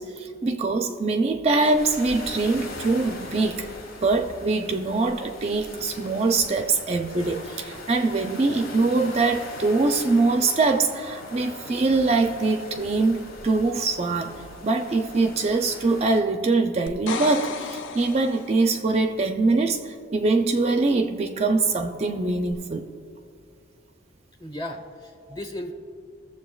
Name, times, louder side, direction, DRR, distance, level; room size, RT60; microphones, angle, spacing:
voice 1, 0.0-3.7 4.0-14.4 14.6-22.8, right 3 dB, 30° right, 6 dB, 0.4 m, -23 dB
sound 1, 1.6-16.2, left 2 dB, 90° left, 1.4 m, -41 dB
sound 2, 16.9-18.8 22.5-22.6, left 5 dB, 70° left, 0.5 m, -33 dB
voice 2, 24.4-25.7, left 1 dB, 20° left, 4 dB, 0.9 m, -36 dB
21.0 x 7.3 x 2.3 m, 2.5 s
head